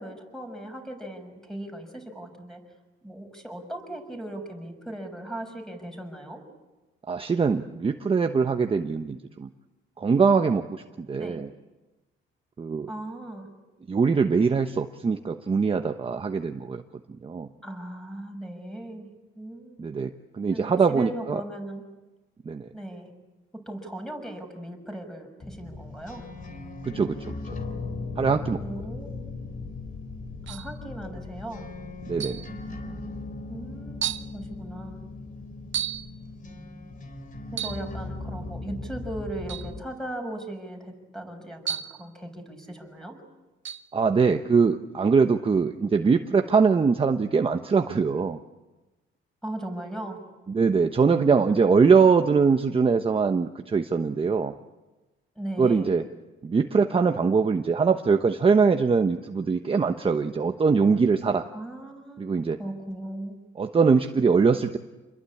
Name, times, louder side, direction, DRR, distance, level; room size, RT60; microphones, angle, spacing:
voice 1, 0.0-2.6 3.0-6.4 11.2-11.4 12.9-13.5 17.6-19.1 19.3-19.9 20.5-21.8 22.7-23.1 23.5-26.2 28.5-29.3 30.5-31.7 33.5-35.0 37.5-43.2 49.4-50.2 55.3-56.0 61.5-63.4, right 1 dB, ahead, 3 dB, 6.5 m, -38 dB
voice 2, 7.1-9.5 10.0-11.5 12.6-12.9 13.9-16.8 17.2-17.5 19.8-21.4 22.4-22.7 26.8-27.4 28.2-28.6 32.1-32.4 43.9-48.4 50.5-54.5 55.6-56.0 56.4-61.5 62.2-62.6 63.6-64.8, right 5 dB, 25° right, 6 dB, 1.1 m, -22 dB
sound 1, 25.4-39.8, left 3 dB, 40° left, 3.8 m, -38 dB
sound 2, 30.5-30.8 32.2-32.5 33.3-33.4 34.0-34.3 35.7-36.1 37.5-37.9 39.5-39.7 41.7-42.1 43.7-43.9, right 10 dB, 70° right, 0.9 m, -32 dB
28.0 x 22.0 x 8.6 m, 1.1 s
cardioid pair, 110°, 21 cm